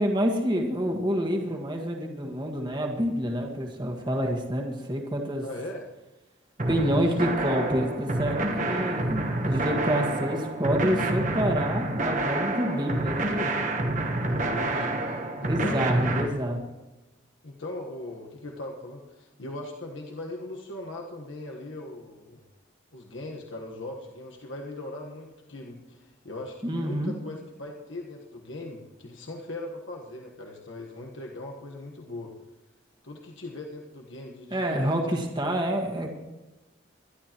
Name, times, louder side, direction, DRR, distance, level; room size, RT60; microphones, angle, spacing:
voice 1, 0.0-5.4 6.6-13.5 15.4-16.6 26.6-27.1 34.5-36.2, equal, 25° right, 1 dB, 1.6 m, -28 dB
voice 2, 5.4-5.9 6.6-7.0 14.2-15.1 15.4-16.3 17.4-22.4 22.9-32.3 33.0-35.2, left 2 dB, 85° left, 0 dB, 1.4 m, -39 dB
sound 1, 6.6-16.3, right 2 dB, 40° right, 1.3 m, -28 dB
23.0 x 11.5 x 3.0 m, 1.1 s
head